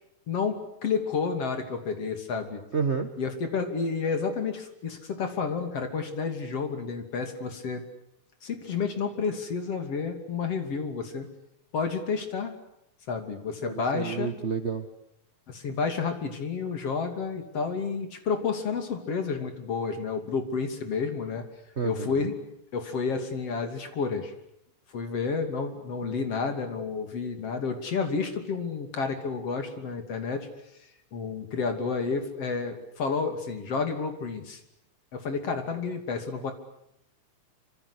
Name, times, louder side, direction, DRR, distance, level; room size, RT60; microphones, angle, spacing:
voice 1, 0.3-2.6 3.2-7.8 8.4-11.3 11.7-12.5 13.1-14.3 15.5-21.4 21.8-22.4 22.7-24.3 24.9-30.5 31.1-34.6 35.1-36.5, left 5 dB, 50° left, 6 dB, 3.7 m, -30 dB
voice 2, 2.7-3.1 13.6-14.9 21.8-22.3, right 5 dB, 50° right, 8 dB, 0.8 m, -30 dB
27.0 x 26.0 x 8.3 m, 0.78 s
omnidirectional pair, 3.5 m